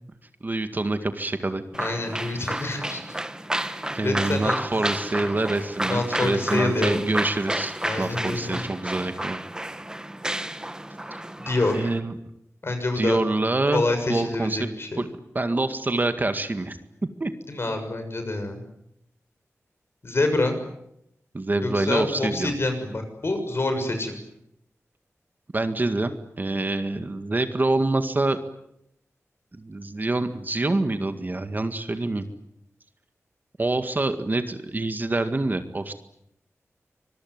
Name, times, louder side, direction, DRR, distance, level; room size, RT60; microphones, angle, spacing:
voice 1, 0.4-1.6 3.9-9.4 11.7-12.1 13.0-13.8 14.1-14.7 15.0-15.1 15.3-16.8 17.2-17.3 21.3-22.5 25.5-26.1 26.4-28.4 29.5-32.2 33.6-35.9, right 2 dB, 35° right, 8 dB, 1.9 m, -26 dB
sound 1, 1.7-12.0, right 1 dB, 15° right, 1.4 m, -31 dB
voice 2, 1.8-3.0 4.0-4.6 5.2-5.3 5.8-7.1 7.8-8.6 11.5-11.9 12.6-13.2 13.7-15.1 17.5-18.6 20.0-20.6 21.6-24.1, left 2 dB, 50° left, 6 dB, 6.6 m, -26 dB
25.0 x 22.0 x 9.6 m, 0.79 s
wide cardioid pair, 95°, 5 cm